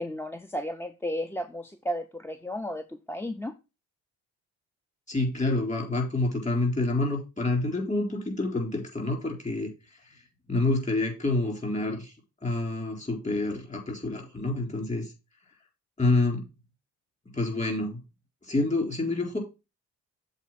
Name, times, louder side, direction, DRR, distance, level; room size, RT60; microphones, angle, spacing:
voice 1, 0.0-3.5, equal, 10° left, 9 dB, 0.6 m, -33 dB
voice 2, 5.1-9.7 10.5-12.1 12.4-15.1 16.0-16.4 17.3-18.0 18.5-19.4, left 2 dB, 25° left, 2 dB, 3.9 m, -27 dB
7.3 x 4.3 x 5.7 m, 0.28 s
cardioid pair, 90°, 30 cm